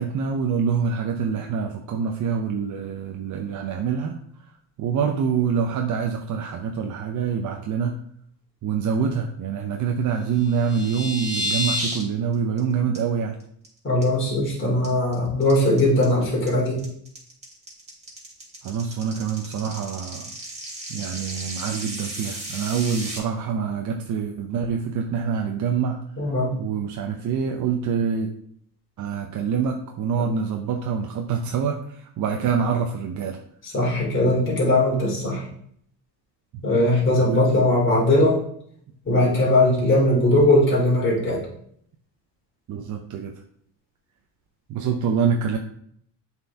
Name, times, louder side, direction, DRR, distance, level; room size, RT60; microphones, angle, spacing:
voice 1, 0.0-4.2 4.8-8.0 8.6-13.4 18.6-20.3 20.9-26.0 26.5-28.3 29.0-33.4 36.5-36.6 37.2-37.4 42.7-43.3 44.7-45.6, right 6 dB, 45° right, 3 dB, 0.7 m, -25 dB
sound 1, 10.4-12.0 12.3-12.6 12.9-13.0 13.4-13.7 14.0-14.5 14.8-23.2, equal, 15° right, 2.9 m, -32 dB
voice 2, 13.8-16.8 26.2-26.5 33.6-35.4 36.6-38.4 39.1-41.4, left 1 dB, 25° left, -5 dB, 2.8 m, -20 dB
7.5 x 4.5 x 3.5 m, 0.67 s
cardioid pair, 120°, 43 cm